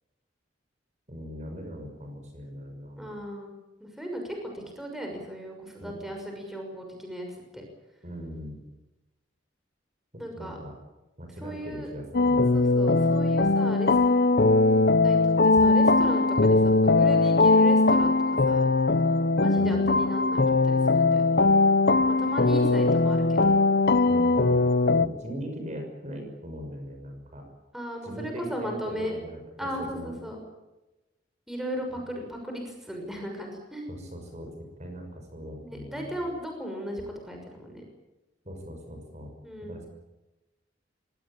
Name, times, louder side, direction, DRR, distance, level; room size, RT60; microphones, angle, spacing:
voice 1, 1.1-3.1 5.8-6.0 8.0-8.6 10.4-10.7 11.2-12.6 19.6-20.0 22.4-22.8 24.1-27.5 28.0-30.1 31.9-32.0 33.9-34.5 34.8-36.2 38.4-39.3 39.6-39.9, equal, 40° right, 4 dB, 6.1 m, -39 dB
voice 2, 3.0-3.5 3.8-7.6 10.2-10.6 11.4-11.9 12.5-14.0 15.0-18.7 19.4-21.3 22.1-23.5 27.7-29.1 29.6-30.4 31.5-34.0 35.6-37.8 39.4-39.8, equal, ahead, 2 dB, 6.3 m, -36 dB
sound 1, 12.1-25.1, left 3 dB, 55° left, 0.9 m, -21 dB
24.5 x 18.5 x 8.9 m, 1.0 s
head